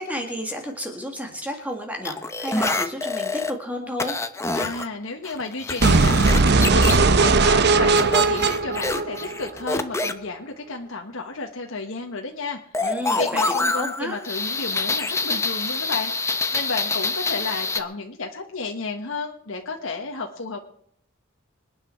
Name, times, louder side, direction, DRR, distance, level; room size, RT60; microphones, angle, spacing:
voice 1, 0.0-4.2 12.8-13.4 13.8-14.2, equal, 5° right, 2 dB, 1.9 m, -31 dB
sound 1, 2.1-3.5 4.0-4.9 5.2-7.0 8.0-10.1 12.7-17.8, left 3 dB, 15° left, 0.9 m, -26 dB
voice 2, 4.5-20.6, left 3 dB, 70° left, 2 dB, 1.4 m, -32 dB
sound 2, 5.8-9.8, right 3 dB, 55° right, 0.9 m, -18 dB
27.0 x 9.3 x 4.6 m, 0.71 s
head